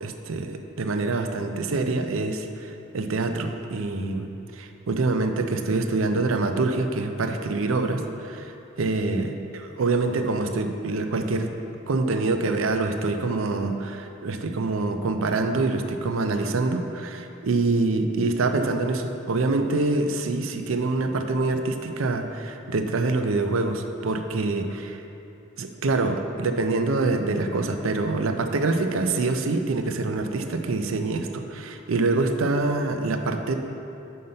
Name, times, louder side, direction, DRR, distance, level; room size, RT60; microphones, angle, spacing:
voice 1, 0.0-4.3 4.5-11.5 11.9-25.0 25.6-33.5, right 3 dB, 85° right, 6 dB, 0.6 m, -25 dB
6.5 x 5.5 x 5.6 m, 2.8 s
head